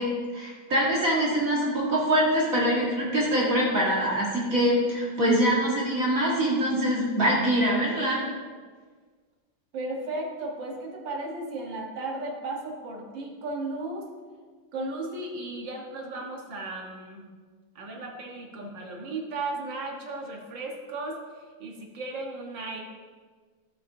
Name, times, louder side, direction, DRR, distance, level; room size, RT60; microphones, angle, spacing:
voice 1, 0.0-8.2, equal, 45° right, -5 dB, 2.0 m, -24 dB
voice 2, 9.7-14.1 14.7-17.3 17.8-22.8, right 2 dB, 75° right, 1 dB, 1.9 m, -35 dB
12.5 x 7.8 x 2.6 m, 1.5 s
omnidirectional pair, 2.1 m